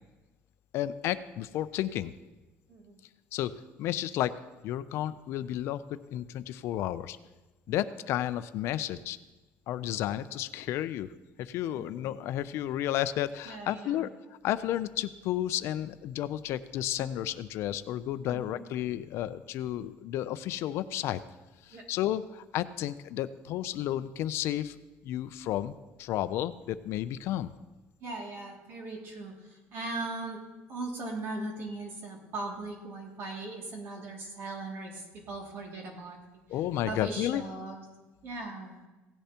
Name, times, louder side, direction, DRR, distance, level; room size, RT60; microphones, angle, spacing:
voice 1, 0.7-2.1 3.3-3.5 3.8-4.3 4.6-7.2 7.7-9.2 9.7-11.1 11.4-14.1 14.4-21.2 21.6-24.8 25.0-27.5 36.5-37.4, left 12 dB, 60° left, 13 dB, 0.4 m, -32 dB
voice 2, 2.7-3.0 7.7-7.8 11.7-11.9 13.4-14.1 18.3-18.6 21.7-21.9 28.0-30.4 30.7-36.2 36.9-37.8 38.2-38.8, right 2 dB, 50° right, 0 dB, 2.4 m, -39 dB
17.0 x 10.0 x 2.9 m, 1.1 s
cardioid pair, 155°, 5 cm